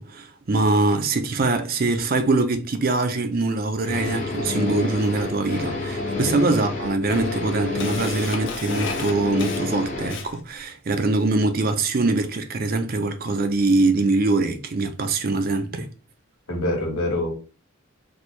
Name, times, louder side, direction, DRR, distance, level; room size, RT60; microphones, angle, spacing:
voice 1, 0.0-15.9, right 3 dB, 45° right, 0.5 m, -23 dB
sound 1, 3.8-10.2, left 3 dB, 40° left, 1.2 m, -29 dB
Camera, 5.6-5.7 6.6-6.7 7.1-10.6, left 4 dB, 60° left, 0.7 m, -34 dB
voice 2, 16.5-17.3, left 1 dB, 80° left, 1.4 m, -25 dB
4.3 x 2.3 x 3.1 m
head